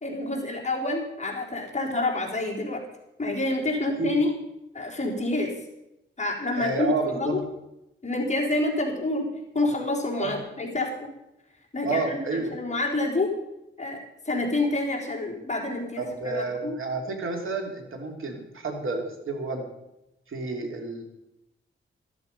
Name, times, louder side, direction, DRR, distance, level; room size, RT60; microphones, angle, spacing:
voice 1, 0.0-2.8 3.2-4.3 4.7-5.5 6.2-7.4 8.0-9.3 9.5-10.9 11.7-13.3 13.8-14.0 14.3-16.8, left 2 dB, 35° left, -1 dB, 3.6 m, -28 dB
voice 2, 6.6-7.4 10.2-10.3 11.8-12.6 16.0-19.7 20.3-21.0, right 3 dB, 75° right, 3 dB, 3.0 m, -30 dB
13.5 x 13.0 x 5.3 m, 0.89 s
wide cardioid pair, 100°, 21 cm